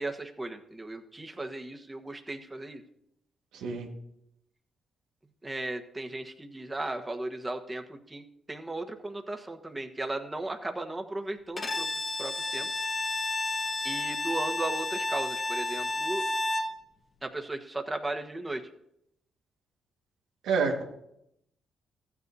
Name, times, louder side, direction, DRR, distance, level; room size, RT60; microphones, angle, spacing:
voice 1, 0.0-2.8 5.4-7.8 8.1-11.9 12.2-12.7 13.8-16.2 17.2-18.6, right 2 dB, 20° right, 5 dB, 1.4 m, -36 dB
voice 2, 3.5-3.9 20.4-20.8, right 5 dB, 85° right, 1 dB, 1.7 m, -28 dB
Bowed string instrument, 11.6-16.8, left 2 dB, 40° left, 1.4 m, -31 dB
14.5 x 9.5 x 2.8 m, 0.76 s
supercardioid pair, 60°, 0 cm